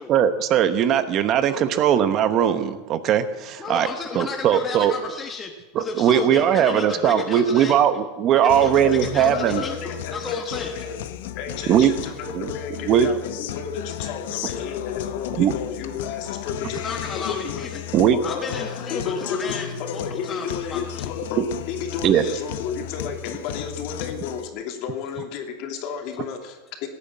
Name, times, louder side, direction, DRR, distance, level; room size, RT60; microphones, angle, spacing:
voice 1, 0.1-3.9 4.1-4.9 5.7-9.6 11.7-11.9 12.3-12.5 12.9-13.1 15.4-15.5 17.9-18.2 21.4-21.5 22.0-22.2, right 9 dB, 40° right, 11 dB, 1.0 m, -19 dB
voice 2, 3.6-5.5 5.8-7.8 8.3-9.8 10.1-10.7 16.6-17.8 18.2-21.1, left 4 dB, 20° left, 3 dB, 1.3 m, -33 dB
Guitar, 8.5-24.5, left 11 dB, 75° left, 1.0 m, -34 dB
voice 3, 8.8-11.0 11.3-16.8 17.1-17.5 18.1-18.6 18.9-19.5 19.8-26.9, left 6 dB, 55° left, 4 dB, 2.9 m, -32 dB
17.0 x 8.9 x 8.6 m, 1.1 s
supercardioid pair, 130°, 0 cm